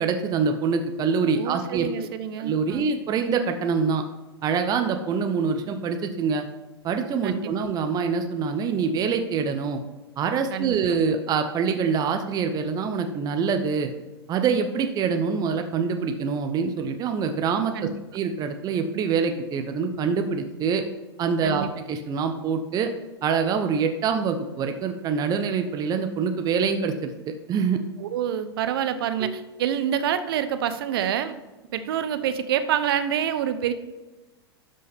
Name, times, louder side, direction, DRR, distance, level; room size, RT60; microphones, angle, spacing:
voice 1, 0.0-1.9 2.4-4.0 4.4-6.4 6.8-9.8 10.2-13.9 14.3-20.8 21.2-22.9 23.2-27.8 29.2-29.3, right 5 dB, 30° right, 6 dB, 0.8 m, -25 dB
voice 2, 1.3-2.9 7.2-7.5 10.5-10.8 17.7-18.0 21.4-21.7 28.0-31.3 31.7-33.7, right 9 dB, 60° right, 11 dB, 0.8 m, -27 dB
12.0 x 5.4 x 3.5 m, 1.1 s
hypercardioid pair, 100°, 14 cm